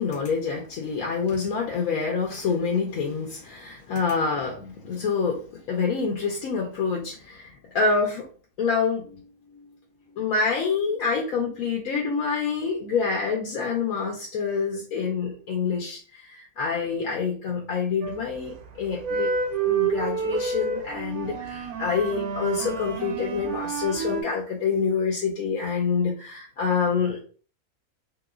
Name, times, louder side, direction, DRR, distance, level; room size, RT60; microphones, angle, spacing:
voice 1, 0.0-8.3 8.6-9.3 9.5-9.7 10.1-19.3 19.6-27.2, left 5 dB, 75° left, 0 dB, 1.1 m, -27 dB
sound 1, 18.0-18.5 18.9-24.2, right 5 dB, 85° right, 1.2 m, -29 dB
3.1 x 2.9 x 2.3 m, 0.39 s
omnidirectional pair, 1.5 m